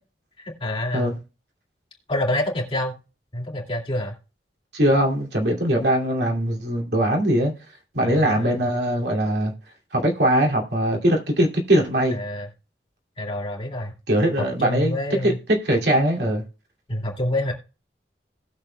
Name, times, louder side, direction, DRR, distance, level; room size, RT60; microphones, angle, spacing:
voice 1, 0.4-1.1 2.1-2.9 3.3-4.1 8.0-8.5 12.1-12.5 13.2-13.9 14.4-15.4 16.9-17.5, left 1 dB, 30° left, 2.3 m, -27 dB
voice 2, 4.7-7.5 7.9-9.5 9.9-12.2 14.1-16.4, right 1 dB, 65° right, 2.5 m, -21 dB
19.0 x 6.8 x 2.2 m
head